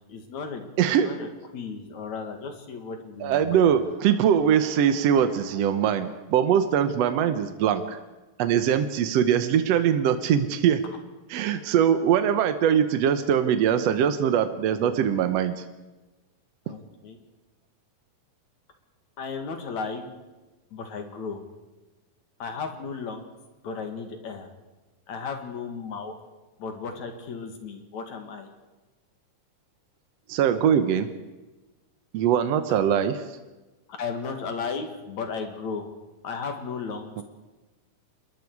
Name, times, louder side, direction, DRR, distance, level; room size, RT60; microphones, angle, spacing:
voice 1, 0.1-0.7 1.0-3.7 16.7-17.2 19.2-20.1 20.7-21.4 22.4-23.3 23.6-24.5 25.1-26.2 26.6-28.5 32.7-32.8 33.9-35.9 36.2-37.2, left 5 dB, 55° left, 5 dB, 3.1 m, -35 dB
voice 2, 0.8-1.1 3.2-8.0 8.4-10.8 11.3-15.6 30.3-31.1 32.1-33.2, right 9 dB, 70° right, 9 dB, 1.5 m, -22 dB
26.0 x 21.0 x 4.8 m, 1.1 s
omnidirectional pair, 4.2 m